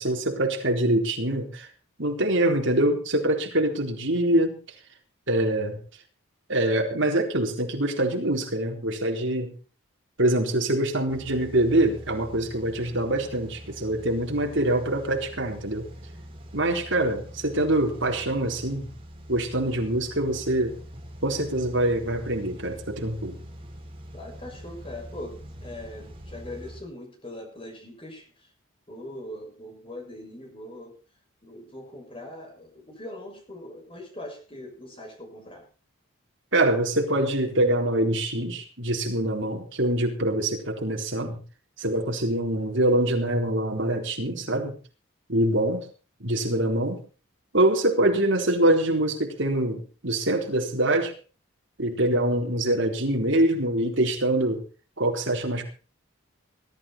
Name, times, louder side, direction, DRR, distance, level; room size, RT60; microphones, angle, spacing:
voice 1, 0.0-1.7 2.0-4.6 5.3-5.8 6.5-9.5 10.2-15.8 16.5-18.9 19.3-20.7 21.2-23.4 36.5-41.4 41.8-44.7 45.3-45.9 46.2-47.0 47.5-51.1 51.8-54.6 55.0-55.6, right 1 dB, 60° right, 2 dB, 4.0 m, -24 dB
sound 1, 11.1-26.8, equal, 25° right, 4.6 m, -44 dB
voice 2, 24.1-28.2 28.9-30.9 31.4-35.7 46.4-46.7, left 1 dB, 25° left, 2 dB, 6.4 m, -41 dB
21.0 x 12.5 x 4.5 m, 0.37 s
head